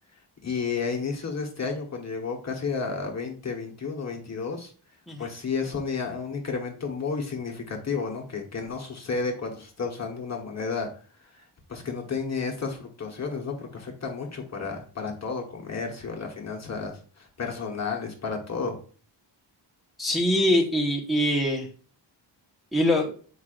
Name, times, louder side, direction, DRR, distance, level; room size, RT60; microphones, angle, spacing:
voice 1, 0.4-4.7 5.2-10.9 11.2-11.4 11.7-18.8, left 5 dB, 35° left, 0 dB, 1.3 m, -32 dB
voice 2, 20.0-21.7 22.7-23.1, left 1 dB, ahead, -3 dB, 1.3 m, -23 dB
8.3 x 4.8 x 2.5 m, 0.41 s
wide cardioid pair, 140°, 45 cm